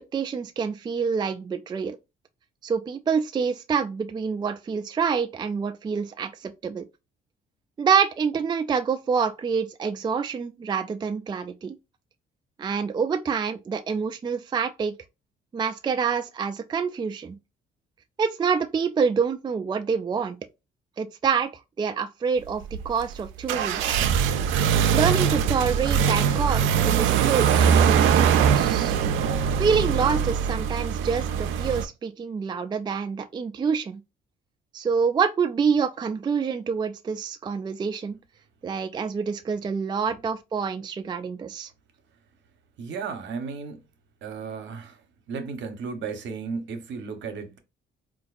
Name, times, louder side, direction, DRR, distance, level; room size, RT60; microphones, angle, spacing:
voice 1, 0.1-2.0 2.6-6.9 7.8-11.7 12.6-14.9 15.5-17.4 18.2-20.4 21.0-21.5 21.8-23.9 24.9-28.9 29.6-34.0 34.7-38.2 38.6-41.7, right 6 dB, 20° right, 0.3 m, -27 dB
sound 1, 22.6-31.8, right 8 dB, 85° right, 0.4 m, -22 dB
voice 2, 42.8-43.8 44.2-45.0 45.3-47.6, right 5 dB, 70° right, 0.8 m, -34 dB
3.8 x 2.5 x 2.3 m
cardioid pair, 90°, 20 cm